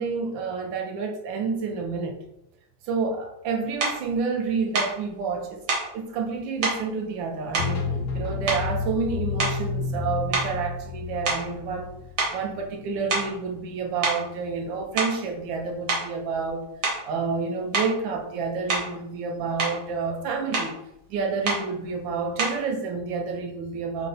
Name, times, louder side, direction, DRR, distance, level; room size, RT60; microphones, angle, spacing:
voice 1, 0.0-2.2 2.8-5.7 5.9-12.0 12.3-16.6 17.0-20.8 21.1-24.1, right 5 dB, 85° right, 3 dB, 1.4 m, -29 dB
sound 1, 3.8-4.0 4.7-5.0 5.7-5.9 6.6-6.8 7.5-8.1 8.5-8.8 9.3-9.7 10.3-11.9 12.2-12.4 13.1-13.4 14.0-14.2 14.8-15.2 15.9-16.1 16.8-17.1 17.7-18.0 18.7-19.0 19.4-19.8 20.5-20.7 21.4-21.7 22.4-22.7, right 3 dB, 65° right, 1.6 m, -27 dB
sound 2, 7.6-13.3, left 4 dB, 65° left, 0.8 m, -31 dB
4.3 x 2.1 x 3.8 m, 0.80 s
omnidirectional pair, 2.0 m